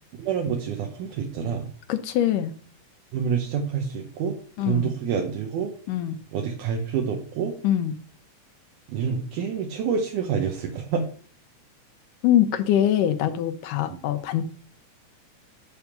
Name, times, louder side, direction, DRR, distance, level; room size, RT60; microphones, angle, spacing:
voice 1, 0.2-1.7 3.1-4.4 4.7-5.7 6.3-7.6 8.9-11.1 13.9-14.0, right 6 dB, 75° right, 2.3 m, -27 dB
voice 2, 1.9-2.5 4.6-4.9 5.9-6.1 7.6-7.9 12.2-14.4, left 11 dB, 90° left, 2.3 m, -23 dB
9.8 x 3.6 x 5.8 m
omnidirectional pair, 3.7 m